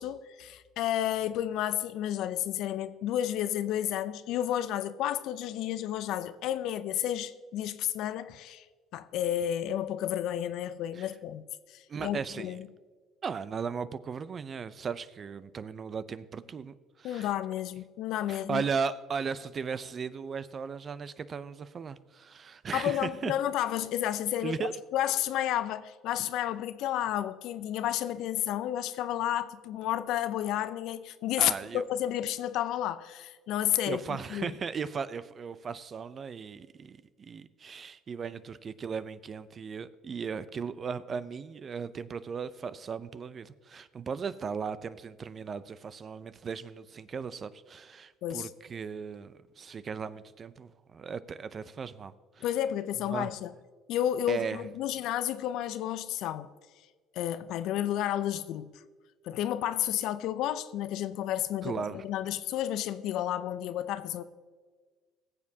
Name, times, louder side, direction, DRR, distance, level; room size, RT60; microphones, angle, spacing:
voice 1, 0.0-8.6 8.9-11.4 11.7-12.7 17.0-18.6 22.7-34.5 48.2-48.5 52.4-53.5 53.9-56.5 57.1-58.7 59.2-64.2, left 11 dB, 70° left, 0.5 m, -31 dB
voice 2, 11.9-12.5 13.2-17.3 18.3-23.3 24.4-24.7 31.4-31.8 33.9-52.4 53.1-53.3 54.3-54.6 61.6-62.0, right 6 dB, 40° right, 0.5 m, -37 dB
20.0 x 7.3 x 2.8 m
supercardioid pair, 75°, 0 cm